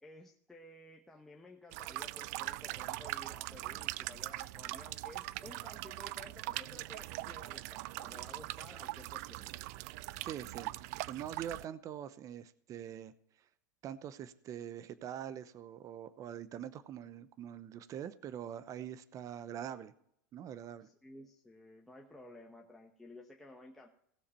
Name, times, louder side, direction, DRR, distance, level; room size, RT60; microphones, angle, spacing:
voice 1, 0.0-9.6 20.8-23.9, left 1 dB, 5° left, -1 dB, 1.1 m, -54 dB
sound 1, 1.7-11.6, right 18 dB, 60° right, 0.4 m, -41 dB
voice 2, 10.2-10.7 11.1-13.1 13.8-19.9 20.3-20.9, right 10 dB, 35° right, 16 dB, 0.8 m, -44 dB
18.0 x 6.6 x 4.4 m, 0.71 s
supercardioid pair, 115°, 10 cm